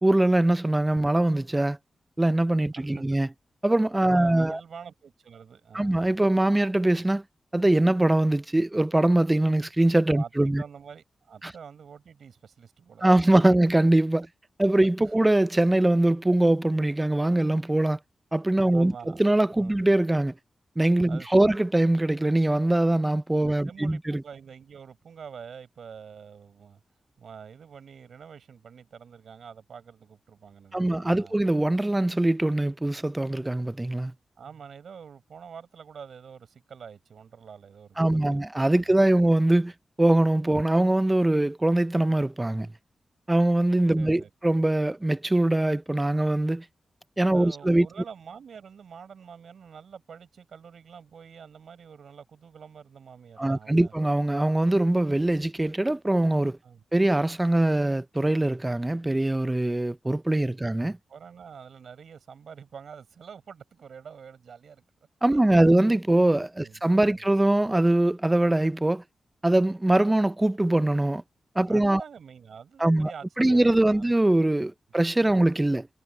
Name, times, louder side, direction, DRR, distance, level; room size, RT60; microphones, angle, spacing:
voice 1, 0.0-1.8 2.2-3.3 3.6-4.6 5.7-7.2 7.5-10.6 11.4-11.5 13.0-14.3 14.6-18.0 18.3-18.9 19.2-20.3 20.8-24.2 30.7-34.1 38.0-39.7 40.0-42.7 43.3-46.6 47.2-47.9 53.4-56.6 56.9-61.0 65.2-69.0 69.4-71.2 71.6-72.0 72.8-73.1 73.4-75.9, right 1 dB, 15° right, 0.5 m, -22 dB
voice 2, 2.7-3.0 4.1-6.0 10.1-13.1 15.0-15.2 18.7-19.2 19.6-19.8 21.1-21.6 23.4-26.8 27.2-31.4 34.4-38.4 38.8-39.3 43.9-44.3 47.3-53.9 56.6-56.8 61.1-64.8 65.3-65.7 66.6-66.8 67.1-67.2 71.6-74.1, right 7 dB, 75° right, 6.4 m, -46 dB
wide cardioid pair, 100°, 0 cm